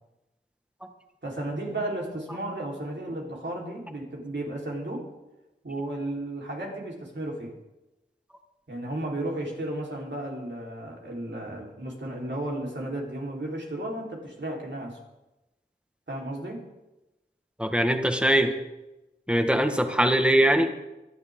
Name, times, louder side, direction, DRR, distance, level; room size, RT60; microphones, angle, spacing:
voice 1, 1.2-5.0 5.6-7.5 8.7-15.0 16.1-16.6, right 1 dB, 70° right, -2 dB, 4.2 m, -34 dB
voice 2, 17.6-18.5 19.3-20.7, right 1 dB, 5° right, 5 dB, 1.7 m, -21 dB
24.5 x 11.0 x 3.8 m, 0.99 s
wide cardioid pair, 40°, 19 cm